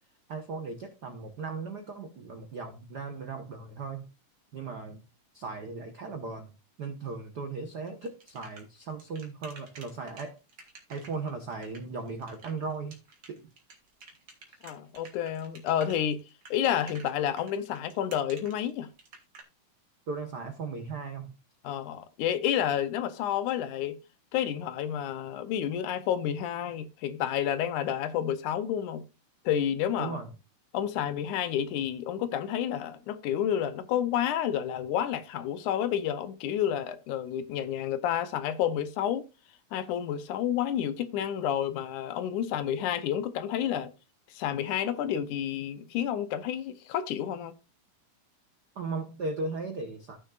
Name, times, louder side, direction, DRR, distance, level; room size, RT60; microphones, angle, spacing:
voice 1, 0.3-4.1 4.5-5.0 5.3-10.4 10.9-13.0 13.3-13.5 14.5-14.6 20.1-21.3 30.0-30.3 48.7-50.2, right 4 dB, 75° right, 0.9 m, -37 dB
sound 1, 7.9-19.4, right 3 dB, 35° right, 2.2 m, -51 dB
voice 2, 14.6-16.2 16.5-18.9 21.6-24.0 24.3-29.0 29.5-30.2 30.7-39.2 39.7-43.9 44.3-47.6, left 10 dB, 75° left, 2.2 m, -30 dB
15.0 x 6.5 x 2.4 m
omnidirectional pair, 3.7 m